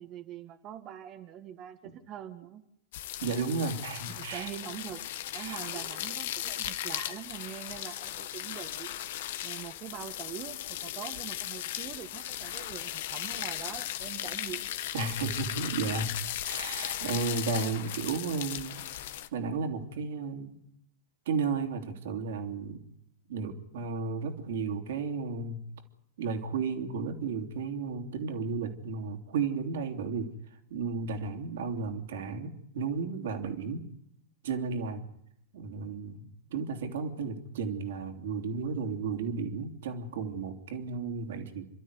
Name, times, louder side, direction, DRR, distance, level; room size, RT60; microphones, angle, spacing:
voice 1, 0.0-2.6 4.1-8.9 9.4-14.7, right 11 dB, 40° right, 7 dB, 1.6 m, -43 dB
sound 1, 2.9-19.3, left 12 dB, 65° left, 1.4 m, -37 dB
voice 2, 3.2-4.5 5.3-5.8 14.9-16.1 16.4-18.8 19.3-20.6 21.2-22.8 23.3-25.6 26.2-30.3 30.7-33.9 34.4-35.0 35.5-41.6, right 4 dB, 70° right, 6 dB, 3.2 m, -33 dB
28.5 x 13.0 x 9.7 m, 0.76 s
hypercardioid pair, 100°, 0 cm